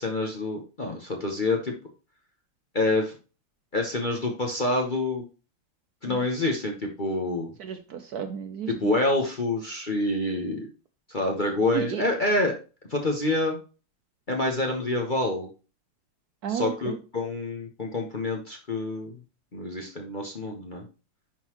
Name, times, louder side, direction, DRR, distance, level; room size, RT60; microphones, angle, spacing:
voice 1, 0.0-1.7 2.7-3.1 3.7-5.2 6.0-7.5 8.7-10.6 11.1-12.5 12.9-13.6 14.3-15.5 16.5-19.2 19.5-20.8, left 2 dB, 35° left, 1 dB, 0.9 m, -27 dB
voice 2, 7.6-8.7 11.7-12.0 16.4-17.0, right 8 dB, 65° right, 8 dB, 1.0 m, -32 dB
10.5 x 3.9 x 3.0 m, 0.33 s
omnidirectional pair, 2.1 m